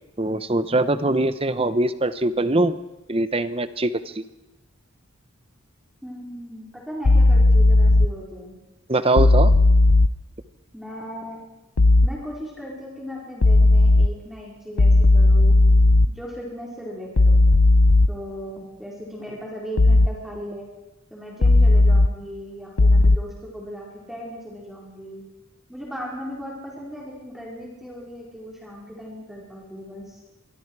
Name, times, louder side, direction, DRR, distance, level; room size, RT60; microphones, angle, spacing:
voice 1, 0.2-2.8 3.1-4.2 8.9-9.5, right 2 dB, 25° right, 12 dB, 0.9 m, -22 dB
voice 2, 6.0-8.5 10.7-11.4 12.0-15.5 16.2-17.4 18.1-20.7 21.1-25.2 25.7-30.2, equal, ahead, -4 dB, 4.7 m, -37 dB
sound 1, 7.0-8.1 9.2-10.1 11.8-12.1 13.4-14.1 14.8-16.1 17.2-18.1 19.8-20.1 21.4-22.1 22.8-23.2, left 2 dB, 85° left, 0.8 m, -14 dB
25.5 x 23.5 x 4.8 m, 0.96 s
head